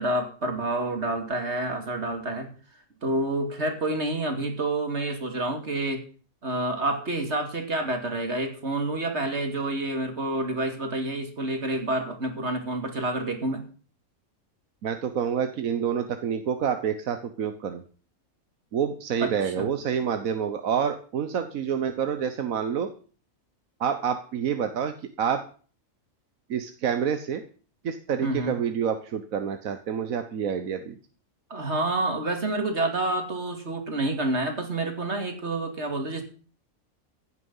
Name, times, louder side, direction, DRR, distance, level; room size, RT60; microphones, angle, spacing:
voice 1, 0.0-2.5 3.0-6.0 6.4-13.6 19.2-19.7 28.2-28.6 31.5-36.2, right 2 dB, 50° right, 5 dB, 2.7 m, -28 dB
voice 2, 14.8-17.8 18.7-22.9 23.8-25.5 26.5-27.4 27.8-31.0, right 7 dB, 75° right, 8 dB, 1.4 m, -28 dB
15.5 x 9.6 x 5.5 m, 0.41 s
omnidirectional pair, 1.5 m